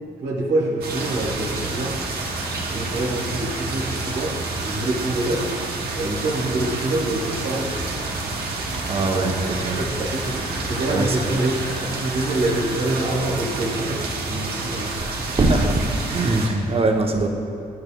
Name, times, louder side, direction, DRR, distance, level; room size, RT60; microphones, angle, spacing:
voice 1, 0.2-2.0 2.7-4.3 4.6-5.5 5.9-7.9 9.1-14.0 14.3-14.9, right 2 dB, 85° right, -3 dB, 1.1 m, -26 dB
sound 1, 0.8-16.5, right 3 dB, 65° right, 0.9 m, -29 dB
sound 2, 2.1-12.8, left 1 dB, 55° left, 1.6 m, -41 dB
voice 2, 8.9-9.8 10.9-11.2 15.3-15.8 16.1-17.3, right 2 dB, 35° right, 3 dB, 0.7 m, -21 dB
8.7 x 6.6 x 2.2 m, 2.5 s
supercardioid pair, 65°, 17 cm